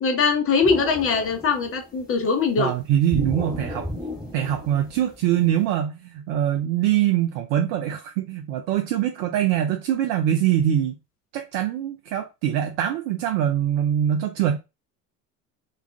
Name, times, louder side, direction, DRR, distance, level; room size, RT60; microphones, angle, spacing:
voice 1, 0.0-2.7, left 5 dB, 30° left, 0.9 m, -22 dB
sound 1, 0.6-2.1 3.1-5.5, left 1 dB, ahead, 1.4 m, -34 dB
voice 2, 2.6-3.9 4.3-11.0 11.3-14.6, right 11 dB, 55° right, 0.5 m, -23 dB
2.3 x 2.3 x 3.3 m
figure-of-eight pair, 60°, 47 cm